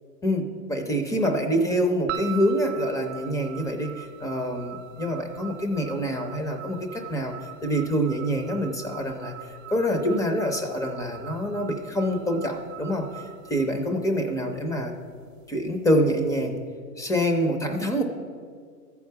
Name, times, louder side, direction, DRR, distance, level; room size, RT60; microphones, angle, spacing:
voice 1, 0.2-7.3 7.6-9.3 9.7-14.9 15.5-16.6 17.0-18.0, equal, 5° left, 4 dB, 0.6 m, -26 dB
sound 1, 2.1-14.4, right 12 dB, 55° right, 0.8 m, -42 dB
13.0 x 4.8 x 6.7 m, 2.1 s
hypercardioid pair, 130°, 47 cm